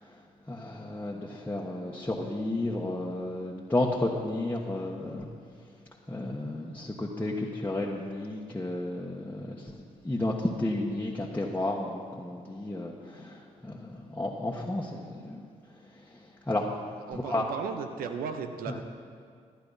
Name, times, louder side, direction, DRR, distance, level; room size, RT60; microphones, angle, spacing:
voice 1, 0.5-5.3 6.1-15.4 16.5-16.7 17.1-17.4 18.7-18.8, left 1 dB, 15° left, -4 dB, 1.3 m, -32 dB
voice 2, 17.1-18.8, right 6 dB, 80° right, 7 dB, 0.9 m, -35 dB
15.0 x 10.5 x 4.1 m, 2.2 s
supercardioid pair, 50°, 15 cm